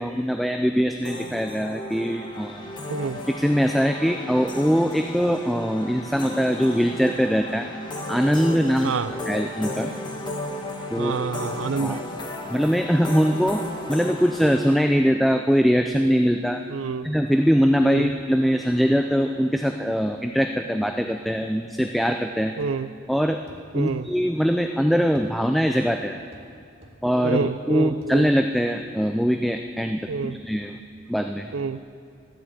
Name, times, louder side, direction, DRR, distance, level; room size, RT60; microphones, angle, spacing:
voice 1, 0.0-2.7 3.4-7.7 8.1-8.9 9.3-9.9 10.9-11.2 11.8-12.0 12.5-16.6 17.0-22.6 23.1-23.4 23.7-26.2 27.0-30.7 31.1-31.5, equal, ahead, 5 dB, 0.3 m, -22 dB
sound 1, 1.0-14.8, left 1 dB, 20° left, 1.2 m, -34 dB
voice 2, 2.9-3.2 8.8-9.1 11.0-12.1 16.7-17.1 17.8-18.1 22.6-22.9 23.7-24.1 27.2-28.3 30.1-30.4 31.5-31.8, right 5 dB, 80° right, 14 dB, 0.5 m, -28 dB
sound 2, 22.6-22.8 23.5-24.0 25.2-25.3 26.3-26.5 26.8-27.0 28.0-28.2, equal, 30° right, 1.8 m, -48 dB
13.5 x 7.8 x 8.9 m, 2.5 s
head